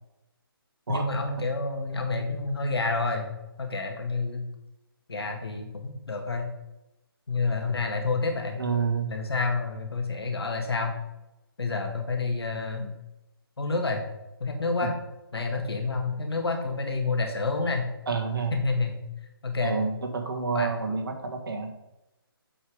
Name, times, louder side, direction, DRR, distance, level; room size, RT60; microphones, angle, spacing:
voice 1, 0.9-3.3 3.6-4.4 5.1-6.5 7.3-8.6 9.1-11.0 11.6-12.9 13.6-14.0 14.4-14.9 15.3-17.9 18.5-19.0 19.4-19.8 20.5-20.7, left 3 dB, 80° left, 3 dB, 2.0 m, -28 dB
voice 2, 8.6-9.1 12.8-12.9 14.8-14.9 18.1-18.6 19.6-21.7, right 5 dB, 60° right, 4 dB, 1.6 m, -29 dB
7.2 x 5.5 x 4.9 m, 0.95 s
hypercardioid pair, 165°, 13 cm